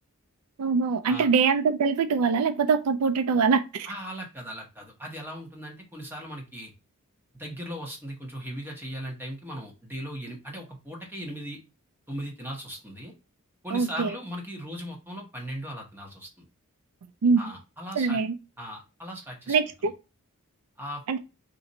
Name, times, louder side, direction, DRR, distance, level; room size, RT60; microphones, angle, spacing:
voice 1, 0.6-3.9 13.7-14.1 17.2-17.5 18.0-18.3 19.5-19.9 21.1-21.2, right 5 dB, 80° right, 0.4 m, -23 dB
voice 2, 3.9-6.7 7.3-11.6 12.1-13.1 13.6-16.4 17.4-18.2 18.6-19.6 20.8-21.0, equal, 10° right, 1.0 m, -38 dB
3.9 x 2.5 x 4.0 m
head